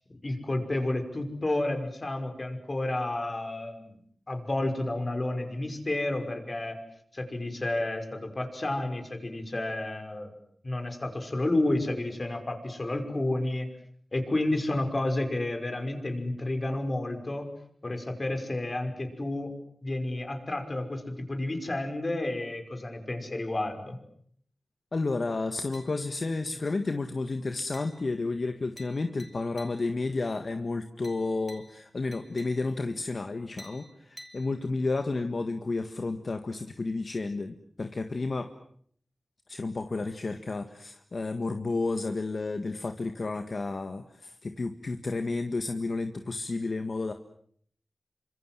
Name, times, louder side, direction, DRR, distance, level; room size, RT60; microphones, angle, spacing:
voice 1, 0.1-4.0 4.3-6.8 7.1-10.3 10.6-13.7 14.1-17.5 17.8-19.6 19.8-24.0, left 2 dB, 40° left, 6 dB, 5.6 m, -31 dB
voice 2, 24.9-38.5 39.5-47.1, left 3 dB, 55° left, 7 dB, 1.7 m, -31 dB
sound 1, 25.7-26.3 26.7-27.1 27.7-30.1 31.0-32.9 33.6-35.0, left 1 dB, 15° left, 4.7 m, -53 dB
28.5 x 25.5 x 7.6 m, 0.64 s
wide cardioid pair, 85°, 0 cm